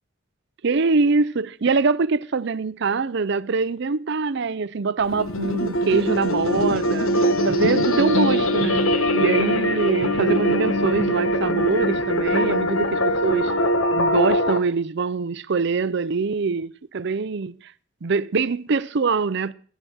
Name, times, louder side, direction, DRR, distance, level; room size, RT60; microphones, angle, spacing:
voice 1, 0.6-7.1 7.4-13.5 13.9-17.5 18.0-19.5, right 4 dB, 55° right, 0.6 m, -24 dB
sound 1, 5.0-14.6, equal, 80° left, 1.4 m, -22 dB
15.0 x 10.0 x 6.2 m
head